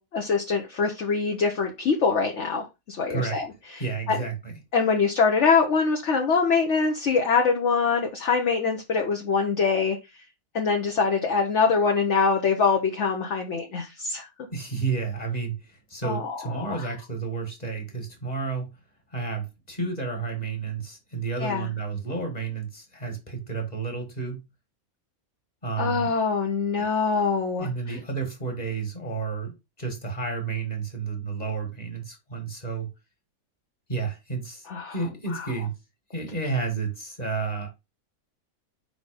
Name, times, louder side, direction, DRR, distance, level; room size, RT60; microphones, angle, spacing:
voice 1, 0.0-3.5 3.7-4.2 4.7-10.0 10.5-14.3 16.0-16.9 21.4-21.7 25.8-28.0 34.7-35.0 35.3-35.5, left 5 dB, 55° left, 2 dB, 1.2 m, -24 dB
voice 2, 3.8-4.6 14.5-18.7 19.1-24.4 25.6-26.1 27.6-29.5 29.8-32.9 33.9-34.7 34.9-35.7 36.1-37.7, right 4 dB, 25° left, 3 dB, 2.1 m, -31 dB
5.1 x 3.9 x 5.1 m, 0.24 s
omnidirectional pair, 1.6 m